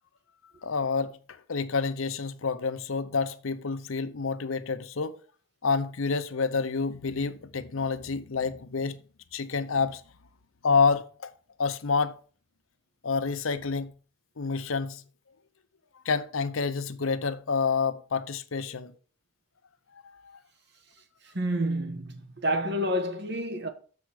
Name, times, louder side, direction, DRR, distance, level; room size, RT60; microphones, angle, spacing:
voice 1, 0.6-1.2 1.5-5.1 5.6-9.0 9.3-10.0 10.6-11.3 11.6-12.2 13.0-13.9 14.4-15.0 16.0-18.9 20.0-20.4, left 5 dB, 80° left, 0.7 m, -28 dB
voice 2, 21.3-23.7, equal, 55° right, 1.2 m, -29 dB
7.0 x 4.8 x 6.3 m
head